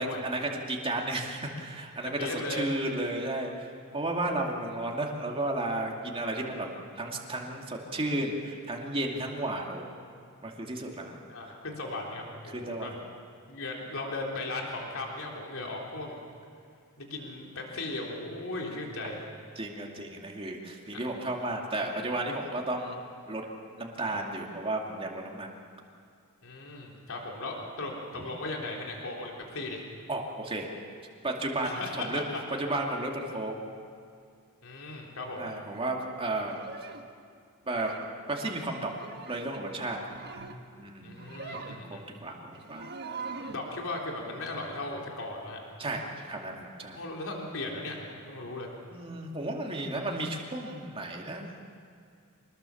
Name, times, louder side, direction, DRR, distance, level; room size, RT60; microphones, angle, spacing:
voice 1, 0.0-3.7 3.9-6.7 7.0-10.0 10.4-11.2 12.5-12.9 19.6-23.0 23.3-23.5 23.8-25.5 30.1-30.7 31.2-32.2 32.6-33.6 35.4-36.6 37.7-37.9 38.3-38.9 39.2-40.0 40.7-42.9 45.8-47.0 48.9-51.5, right 2 dB, 25° right, 0 dB, 2.5 m, -33 dB
voice 2, 2.1-2.6 6.2-6.6 11.3-12.9 13.5-16.2 17.0-19.2 20.9-21.0 26.4-29.8 31.6-32.4 34.6-35.5 41.0-42.0 43.5-45.6 46.9-48.7, left 2 dB, 65° left, -1 dB, 3.7 m, -37 dB
sound 1, 36.4-37.1 37.7-38.1 38.8-39.6 40.0-40.6 41.1-41.8 42.6-43.7, right 4 dB, 50° right, 1.4 m, -42 dB
25.5 x 20.5 x 7.2 m, 2.3 s
head